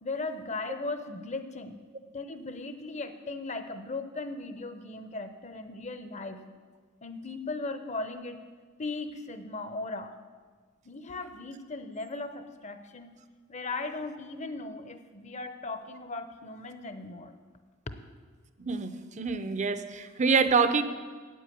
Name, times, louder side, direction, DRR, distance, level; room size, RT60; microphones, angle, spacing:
voice 1, 0.0-1.8 2.1-6.4 7.0-8.4 8.8-10.1 10.8-13.1 13.5-17.3, left 3 dB, 35° left, 9 dB, 0.8 m, -37 dB
voice 2, 18.6-20.8, right 5 dB, 35° right, 11 dB, 0.6 m, -26 dB
9.0 x 8.5 x 8.5 m, 1.5 s
head